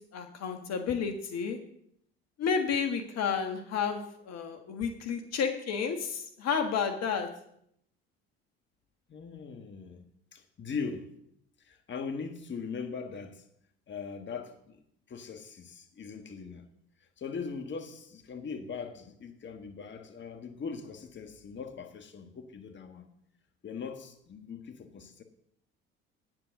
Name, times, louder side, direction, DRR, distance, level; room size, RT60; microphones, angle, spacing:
voice 1, 0.1-1.6 2.4-7.3, left 6 dB, 55° left, 1.4 m, -31 dB
voice 2, 9.1-10.0 10.3-11.1 11.6-13.4 13.9-14.8 15.1-16.6 17.2-23.1 23.6-25.2, left 5 dB, 35° left, 1.5 m, -40 dB
9.7 x 7.7 x 6.5 m
hypercardioid pair, 65°, 31 cm